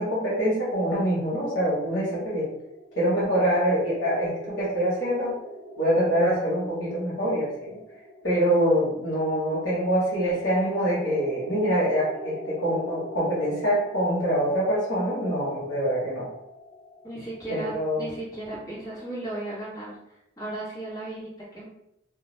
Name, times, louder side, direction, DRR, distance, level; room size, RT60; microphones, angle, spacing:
voice 1, 0.0-2.5 3.0-5.4 5.8-7.8 8.2-16.3 17.5-18.0, equal, 75° left, -7 dB, 1.0 m, -25 dB
sound 1, 2.1-18.7, equal, 5° right, 0.5 m, -43 dB
voice 2, 17.0-20.0 20.4-21.7, right 2 dB, 20° left, -9 dB, 0.9 m, -35 dB
2.2 x 2.2 x 3.0 m, 0.82 s
head